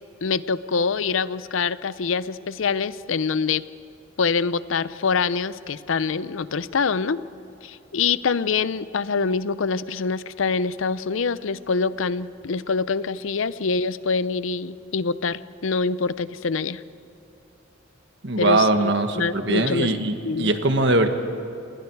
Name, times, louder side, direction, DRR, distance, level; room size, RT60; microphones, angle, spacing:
voice 1, 0.2-3.6 4.2-7.2 7.6-16.8 18.4-19.9 20.2-20.5, left 5 dB, 80° left, 16 dB, 0.6 m, -25 dB
voice 2, 18.2-21.1, right 2 dB, 60° right, 7 dB, 1.5 m, -21 dB
29.0 x 20.5 x 4.7 m, 2.9 s
head